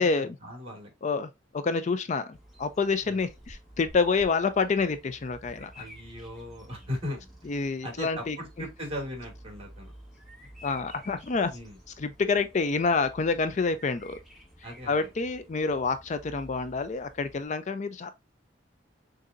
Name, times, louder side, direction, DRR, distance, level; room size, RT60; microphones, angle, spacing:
voice 1, 0.0-0.9 3.0-3.2 5.8-7.5 7.8-9.9 11.5-11.8 14.6-15.1, left 1 dB, 35° right, 2.3 m, -38 dB
voice 2, 1.0-5.9 7.5-8.4 10.6-11.5 12.0-14.2 14.9-18.1, left 4 dB, 40° left, 0.4 m, -28 dB
Bird vocalization bird call bird song, 2.3-17.5, equal, ahead, 1.4 m, -51 dB
6.5 x 2.6 x 2.5 m
head